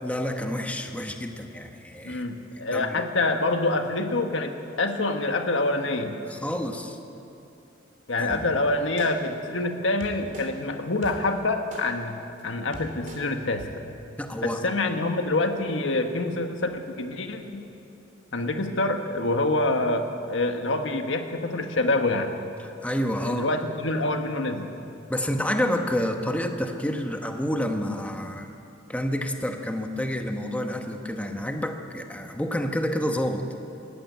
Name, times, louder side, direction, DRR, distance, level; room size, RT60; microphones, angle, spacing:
voice 1, 0.0-2.2 2.7-3.0 6.3-7.0 8.2-8.4 14.2-14.6 22.6-23.4 25.1-28.5 28.9-33.6, equal, 5° left, 4 dB, 1.1 m, -29 dB
voice 2, 2.0-6.1 8.1-13.7 14.4-17.6 18.3-22.3 23.2-24.7, left 2 dB, 75° left, 5 dB, 1.5 m, -26 dB
sound 1, 8.3-8.4 9.0-9.1 10.0-10.5 11.0-11.1 11.7-11.8 12.4-12.5 12.7-13.2 13.6-13.7, right 1 dB, 45° right, 3.1 m, -41 dB
19.5 x 15.0 x 9.5 m, 2.8 s
head